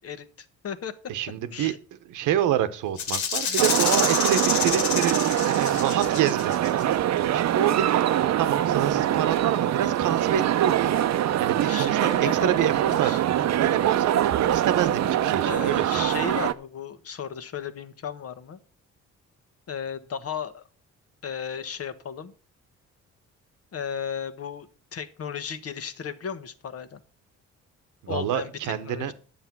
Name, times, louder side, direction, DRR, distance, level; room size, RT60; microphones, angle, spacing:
voice 1, 0.0-1.1 1.5-1.8 11.7-13.2 15.4-18.6 19.7-20.7 21.2-22.3 23.7-27.0 28.1-29.1, left 7 dB, 50° left, 1.3 m, -35 dB
voice 2, 1.1-1.8 2.1-11.0 11.4-16.1 28.0-29.1, right 11 dB, 85° right, 1.1 m, -28 dB
Rattle (instrument), 3.0-6.8, left 6 dB, 70° left, 2.2 m, -28 dB
sound 1, 3.6-16.5, right 11 dB, 60° right, 0.7 m, -24 dB
9.9 x 7.3 x 6.0 m
cardioid pair, 90°, 30 cm